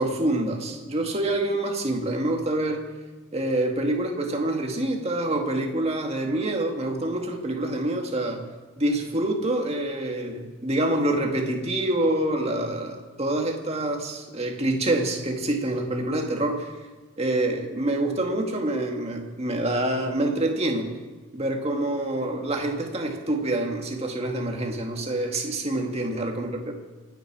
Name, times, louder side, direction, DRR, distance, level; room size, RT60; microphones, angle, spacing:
voice 1, 0.0-2.9 3.3-8.5 8.8-16.7 17.2-20.9 21.3-26.6, right 1 dB, 30° right, 2 dB, 1.8 m, -26 dB
27.5 x 9.3 x 4.8 m, 1.3 s
head